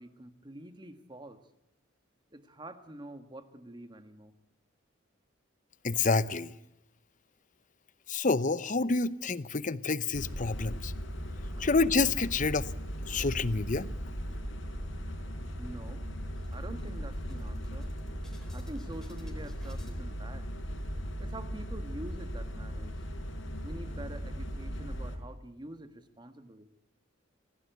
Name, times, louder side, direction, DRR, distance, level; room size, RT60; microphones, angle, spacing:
voice 1, 0.0-1.4 2.3-4.3 11.6-11.7 15.6-16.0 16.5-17.9 18.5-20.5 21.2-22.9 23.6-26.7, right 1 dB, 25° right, 1.7 m, -46 dB
voice 2, 5.8-6.5 8.1-10.9 11.6-12.7 13.0-13.9, left 3 dB, 40° left, 0.8 m, -28 dB
sound 1, 10.1-25.2, equal, 75° left, 4.8 m, -38 dB
sound 2, 14.9-15.4 15.8-15.9 16.2-20.0, equal, 5° left, 4.2 m, -57 dB
25.5 x 17.0 x 8.1 m
head